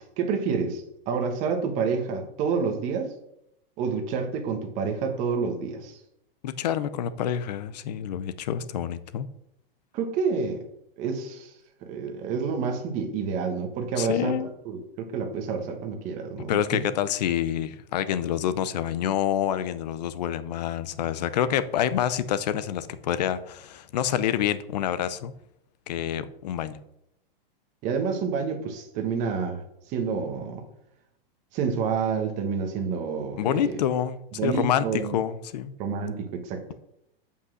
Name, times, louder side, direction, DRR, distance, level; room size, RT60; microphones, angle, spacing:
voice 1, 0.2-3.1 3.8-6.0 9.9-10.6 11.0-11.5 11.8-16.6 27.8-29.6 29.9-30.6 31.5-33.8 34.4-35.2 35.8-36.7, right 5 dB, 25° right, 5 dB, 1.3 m, -28 dB
voice 2, 6.4-9.3 14.0-14.5 16.5-25.3 25.9-26.8 33.4-35.7, left 10 dB, 45° left, 14 dB, 0.7 m, -27 dB
8.4 x 5.6 x 6.3 m, 0.78 s
supercardioid pair, 170°, 29 cm